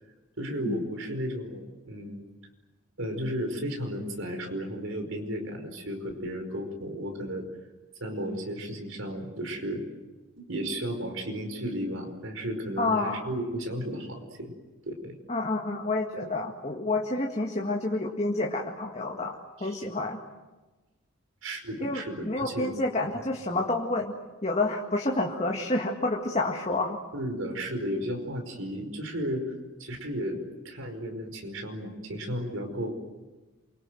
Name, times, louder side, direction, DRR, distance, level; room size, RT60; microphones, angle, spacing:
voice 1, 0.4-2.2 3.0-7.4 8.0-9.8 10.4-14.5 14.9-15.1 19.6-19.8 21.4-22.7 27.1-29.4 29.8-30.4 30.7-32.9, equal, 75° right, 5 dB, 5.1 m, -34 dB
voice 2, 12.8-13.3 15.3-20.2 21.8-24.1 24.4-27.0, left 2 dB, 30° left, 1 dB, 2.0 m, -29 dB
28.5 x 24.5 x 7.8 m, 1.2 s
head